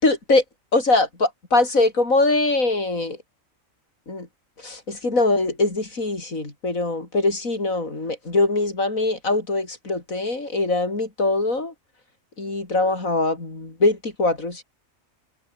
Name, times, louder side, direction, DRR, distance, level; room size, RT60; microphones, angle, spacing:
voice 1, 0.0-0.4 0.7-3.2 4.1-4.3 4.6-11.7 12.4-14.6, left 2 dB, 90° left, 5.2 m, -22 dB
omnidirectional pair, 1.4 m